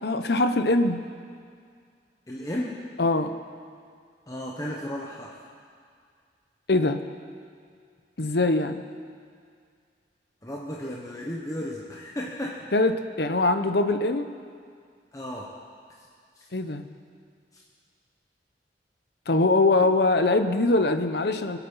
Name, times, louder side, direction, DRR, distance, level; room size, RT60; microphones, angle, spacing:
voice 1, 0.0-1.0 3.0-3.3 6.7-7.0 8.2-8.8 12.7-14.3 16.5-16.8 19.3-21.6, left 2 dB, 70° left, 8 dB, 0.9 m, -22 dB
voice 2, 2.3-2.8 4.3-5.4 10.4-12.7 15.1-15.5 16.0-16.1 16.4-16.5 17.5-17.6, left 1 dB, 20° left, -3 dB, 1.1 m, -34 dB
25.0 x 8.4 x 5.6 m, 2.2 s
head